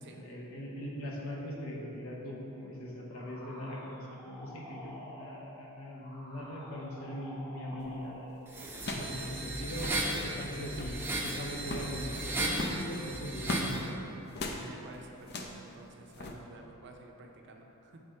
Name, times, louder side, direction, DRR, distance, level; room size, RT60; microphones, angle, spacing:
voice 1, 0.1-8.1 8.8-13.9, left 1 dB, 70° left, -2 dB, 1.0 m, -40 dB
sound 1, 3.1-8.5, equal, 20° left, 1.1 m, -49 dB
sound 2, 7.8-8.1 8.8-9.2 9.4-9.5 9.7-10.1 10.6-11.0 11.6-12.0 12.5-13.7 14.3-14.6 15.2-15.6 16.1-16.3, left 2 dB, 50° left, 0.5 m, -38 dB
sound 3, 8.5-13.8, right 1 dB, 10° right, 0.6 m, -36 dB
voice 2, 9.0-9.3 14.5-18.0, right 2 dB, 55° right, 2 dB, 0.6 m, -51 dB
7.1 x 3.8 x 4.3 m, 3.0 s
head